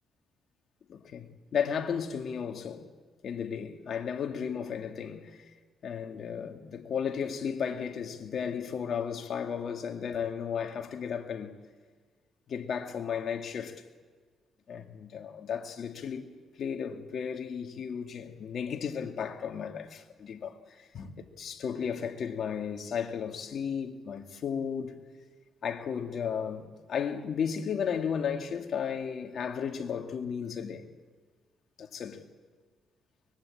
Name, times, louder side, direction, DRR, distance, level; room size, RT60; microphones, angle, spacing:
voice 1, 0.9-2.9 3.2-5.4 5.8-11.6 12.5-13.8 14.7-16.2 16.6-20.6 20.9-24.9 25.6-30.9 31.8-32.2, left 7 dB, 60° left, 2.3 m, -34 dB
23.5 x 21.5 x 8.7 m
cardioid pair, 90°, 0 cm